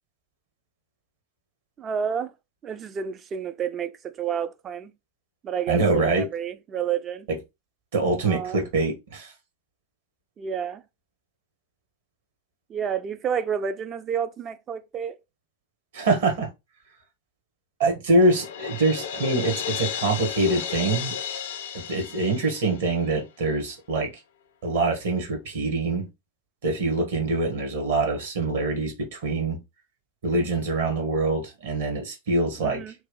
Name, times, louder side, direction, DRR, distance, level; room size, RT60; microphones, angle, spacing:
voice 1, 1.8-2.3 2.6-4.9 5.4-7.3 8.2-8.6 10.4-10.8 12.7-15.2 32.6-32.9, right 8 dB, 25° right, 0.3 m, -30 dB
voice 2, 5.7-6.3 7.3-7.4 7.9-9.3 15.9-16.5 17.8-21.1 21.7-24.1 24.6-26.1 26.6-29.6 30.2-32.8, right 2 dB, 55° right, 1.2 m, -24 dB
Crash cymbal, 18.2-23.1, left 8 dB, 60° left, 0.4 m, -33 dB
3.0 x 2.3 x 3.6 m
figure-of-eight pair, 90°, 0 cm